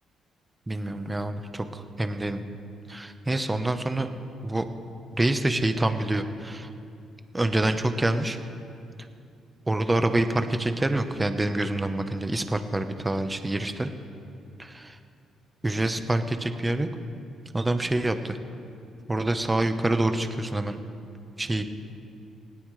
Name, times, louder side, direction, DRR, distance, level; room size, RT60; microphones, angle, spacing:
voice 1, 0.7-2.4 2.9-4.1 4.4-4.6 5.1-6.7 7.3-8.4 9.7-13.9 14.6-15.0 15.6-16.9 17.5-18.4 19.1-20.8 21.4-21.6, right 1 dB, 15° right, 8 dB, 1.0 m, -26 dB
19.5 x 17.0 x 3.3 m, 2.5 s
cardioid pair, 90°, 0 cm